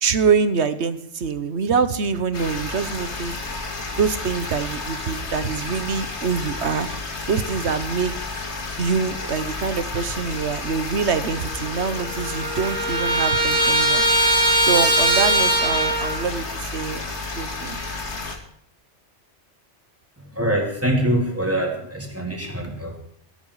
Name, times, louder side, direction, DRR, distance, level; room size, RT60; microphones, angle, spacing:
voice 1, 0.0-3.3 4.0-6.9 7.3-8.1 8.8-14.0 14.6-17.8, right 5 dB, 65° right, 12 dB, 1.3 m, -25 dB
sound 1, 2.3-18.4, left 3 dB, 65° left, 2.4 m, -31 dB
Trumpet, 11.5-11.6 11.8-16.2, right 1 dB, 35° right, 4.2 m, -20 dB
voice 2, 20.2-23.0, right 1 dB, 10° right, 1 dB, 3.4 m, -24 dB
17.0 x 12.0 x 4.9 m, 0.67 s
omnidirectional pair, 1.2 m